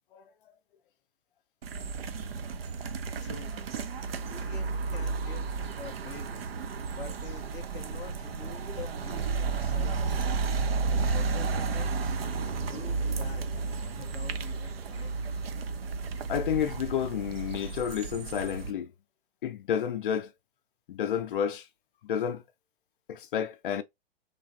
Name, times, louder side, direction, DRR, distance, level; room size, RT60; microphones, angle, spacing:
sound 1, 1.6-18.7, right 4 dB, 70° right, 0.6 m, -32 dB
voice 1, 3.2-3.6 4.3-6.5 6.9-10.3 11.0-12.2 12.7-13.6 13.9-15.2, left 7 dB, 10° left, 0.3 m, -47 dB
voice 2, 16.3-18.9 19.4-20.3 20.9-21.7 22.0-22.4 23.1-23.8, left 9 dB, 55° left, 0.6 m, -30 dB
3.3 x 3.1 x 2.6 m
figure-of-eight pair, 110°, 31 cm